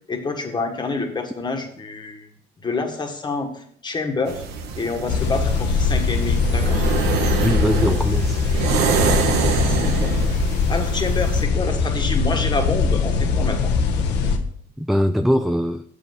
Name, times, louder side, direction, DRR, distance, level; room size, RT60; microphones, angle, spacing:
voice 1, 0.1-2.3 2.6-4.4 4.7-6.9 9.6-10.2 10.7-13.7, left 3 dB, 25° left, 1.4 m, -27 dB
sound 1, 4.3-11.4, right 6 dB, 85° right, 1.1 m, -26 dB
sound 2, 5.1-14.4, left 4 dB, 85° left, 1.1 m, -21 dB
voice 2, 7.4-8.4 14.8-15.8, equal, ahead, 0.3 m, -21 dB
7.0 x 5.5 x 6.0 m
cardioid pair, 110°, 17 cm